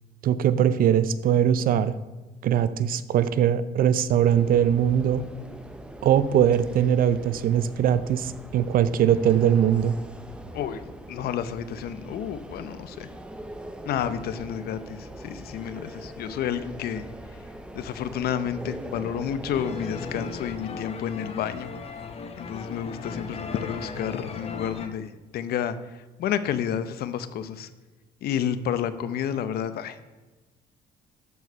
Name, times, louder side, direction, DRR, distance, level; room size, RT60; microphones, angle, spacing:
voice 1, 0.2-2.0 2.4-5.2 6.0-10.0, right 9 dB, 55° right, 14 dB, 0.6 m, -21 dB
sound 1, 4.2-20.6, right 1 dB, 5° right, 0.7 m, -42 dB
voice 2, 10.5-13.1 13.8-17.1 17.7-21.7 22.4-27.7 28.2-30.0, left 9 dB, 65° left, 13 dB, 0.7 m, -30 dB
sound 2, 19.5-24.9, left 4 dB, 35° left, 0.9 m, -37 dB
12.5 x 4.7 x 5.3 m, 1.2 s
cardioid pair, 110°, 17 cm